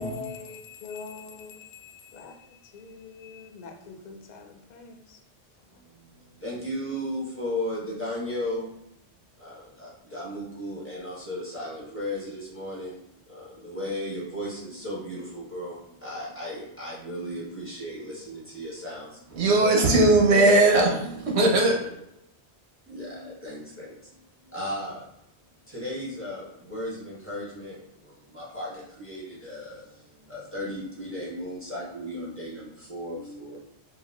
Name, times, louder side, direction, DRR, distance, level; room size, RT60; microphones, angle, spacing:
voice 1, 0.0-5.2, left 4 dB, 55° left, 0.5 m, -43 dB
voice 2, 5.7-8.7 9.4-13.0 13.3-19.2 19.7-20.0 22.9-25.1 25.7-33.6, left 1 dB, 10° left, 1.0 m, -36 dB
voice 3, 19.3-21.9, right 2 dB, 80° right, 1.1 m, -19 dB
4.2 x 2.3 x 2.3 m
omnidirectional pair, 1.1 m